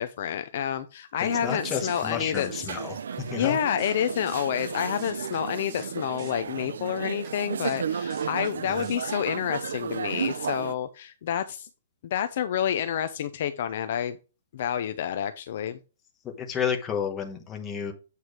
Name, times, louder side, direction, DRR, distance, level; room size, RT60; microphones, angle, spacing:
voice 1, 0.0-2.7 3.4-11.7 12.0-14.2 14.5-15.8, left 9 dB, 40° left, 11 dB, 0.5 m, -29 dB
voice 2, 1.2-3.0 3.3-3.6 8.6-8.8 16.2-17.9, left 7 dB, 10° left, 3 dB, 1.1 m, -31 dB
sound 1, 1.2-10.7, right 7 dB, 75° right, 0.5 m, -34 dB
sound 2, 1.5-1.6 1.9-2.0 2.3-2.5 3.4-3.5 3.8-4.0 4.3-4.7 5.0-5.4 5.7-5.9 6.2-6.3 7.2-7.3 7.6-7.8 8.1-8.5 8.8-9.0, right 3 dB, 15° right, 1.8 m, -47 dB
8.2 x 4.5 x 4.8 m, 0.32 s
hypercardioid pair, 180°, 0 cm